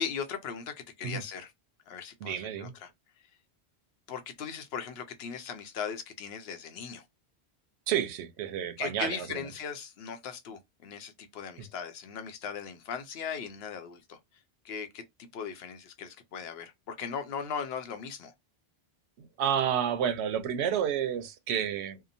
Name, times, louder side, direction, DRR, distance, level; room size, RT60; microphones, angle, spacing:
voice 1, 0.0-1.5 1.9-2.9 4.1-7.0 8.8-14.2 14.6-15.0 15.3-18.3, left 6 dB, 75° left, 0.8 m, -38 dB
voice 2, 2.2-2.8 7.9-9.5 11.6-11.7 19.2-22.0, right 9 dB, 90° right, 0.8 m, -30 dB
2.8 x 2.1 x 2.5 m
omnidirectional pair, 1.1 m